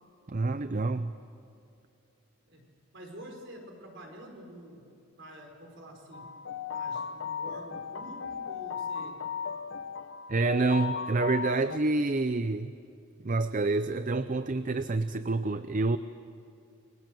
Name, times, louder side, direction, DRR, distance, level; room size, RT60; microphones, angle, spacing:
voice 1, 0.3-1.1 10.3-12.7 13.2-16.0, right 3 dB, 35° right, 12 dB, 0.5 m, -28 dB
voice 2, 2.9-4.8 5.2-6.3 6.7-9.2, right 1 dB, 55° right, 2 dB, 4.9 m, -47 dB
sound 1, 6.1-11.8, left 6 dB, 55° left, 0.8 m, -36 dB
29.0 x 23.5 x 7.7 m, 2.6 s
head